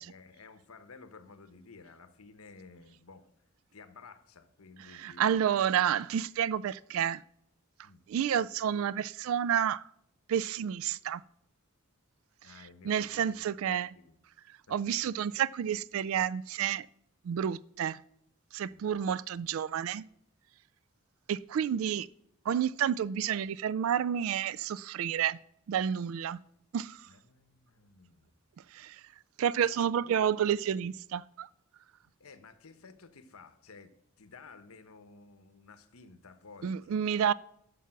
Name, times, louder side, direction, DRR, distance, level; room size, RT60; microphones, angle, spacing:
voice 1, 0.0-3.2 3.7-5.6 7.8-8.0 12.4-14.2 14.7-14.9 18.7-19.0 27.1-28.3 29.6-30.5 32.2-37.0, left 4 dB, 80° left, 0.9 m, -54 dB
voice 2, 5.0-7.2 8.1-9.8 10.3-11.2 12.8-13.9 14.7-16.9 17.2-18.0 18.5-20.0 21.3-22.1 22.5-25.4 25.7-26.4 26.7-27.0 28.7-29.0 29.4-31.5 36.6-37.3, right 9 dB, 65° right, 0.3 m, -30 dB
12.0 x 7.0 x 5.8 m
head